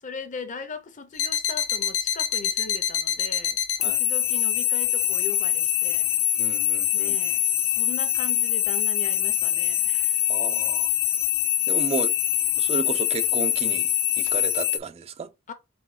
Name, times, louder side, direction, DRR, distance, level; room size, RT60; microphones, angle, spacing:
voice 1, 0.0-6.1 6.9-10.3 15.5-15.6, left 4 dB, 40° left, 0.7 m, -39 dB
sound 1, 1.2-14.8, left 11 dB, 70° left, 0.6 m, -24 dB
voice 2, 6.4-7.2 10.3-10.9 11.7-12.1 12.6-13.9 14.2-15.3, right 4 dB, 30° right, 0.3 m, -32 dB
4.0 x 3.7 x 3.2 m
head